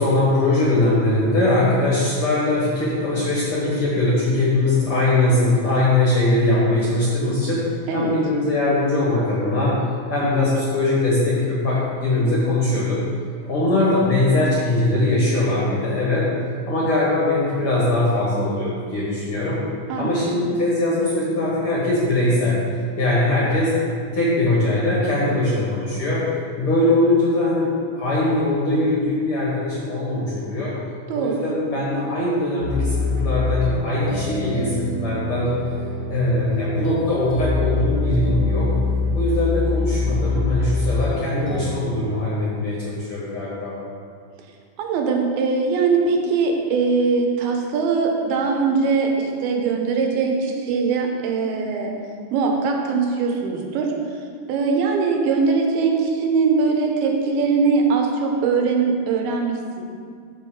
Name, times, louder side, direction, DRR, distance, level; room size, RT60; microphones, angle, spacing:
voice 1, 0.0-7.7 7.9-9.8 10.1-13.0 13.5-16.3 16.7-19.6 20.0-22.6 23.0-23.7 24.1-26.3 26.6-30.7 31.1-35.5 36.1-38.7 39.1-43.8, left 2 dB, 50° left, -7 dB, 1.7 m, -21 dB
voice 2, 19.9-20.3 31.1-31.5 44.8-51.9 52.3-53.9 54.5-59.8, right 4 dB, 85° right, 2 dB, 2.8 m, -21 dB
sound 1, 32.6-41.6, left 3 dB, 30° left, 0.8 m, -25 dB
13.0 x 5.0 x 3.8 m, 2.1 s
omnidirectional pair, 4.3 m